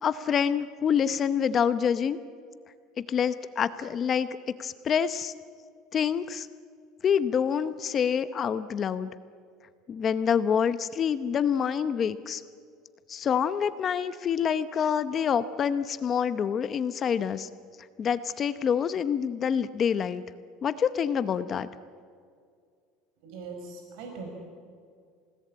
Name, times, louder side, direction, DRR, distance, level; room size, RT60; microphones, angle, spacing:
voice 1, 0.0-2.2 3.0-5.3 5.9-6.5 7.0-9.1 9.9-12.4 13.1-17.5 18.0-20.2 20.6-21.7, left 7 dB, 30° left, 12 dB, 0.8 m, -27 dB
voice 2, 23.2-24.3, right 4 dB, 70° right, 3 dB, 5.2 m, -40 dB
29.0 x 18.0 x 8.7 m, 2.2 s
cardioid pair, 140°, 0 cm